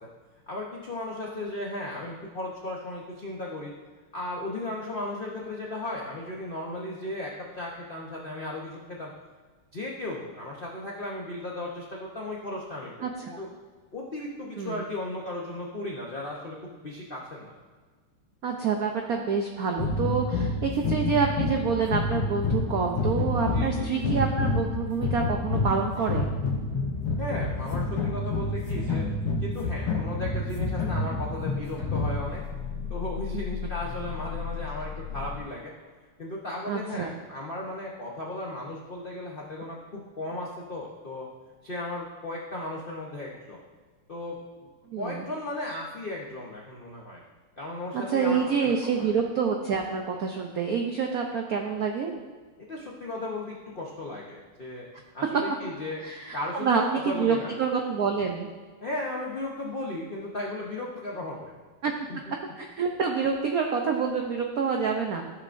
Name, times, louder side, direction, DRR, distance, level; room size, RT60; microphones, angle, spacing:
voice 1, 0.5-3.7 4.1-9.1 9.7-13.5 13.9-16.6 16.8-17.5 23.5-24.1 27.2-29.0 29.4-32.4 32.9-35.7 36.2-41.3 41.6-43.6 44.1-44.4 45.0-47.2 47.6-49.1 52.7-54.8 55.1-56.0 56.3-57.6 58.8-61.6 62.1-62.2, left 2 dB, 65° left, -3 dB, 0.5 m, -35 dB
voice 2, 13.0-13.4 14.6-14.8 18.4-26.3 33.3-33.4 36.7-37.1 44.9-45.2 47.9-52.1 56.0-58.5 61.8-61.9 62.6-65.2, right 5 dB, 85° right, 2 dB, 0.8 m, -27 dB
sound 1, 19.8-32.5, left 3 dB, 50° left, 2.0 m, -28 dB
sound 2, 26.4-35.4, left 5 dB, 25° left, 2.2 m, -39 dB
14.5 x 6.4 x 2.6 m, 1.4 s
omnidirectional pair, 2.4 m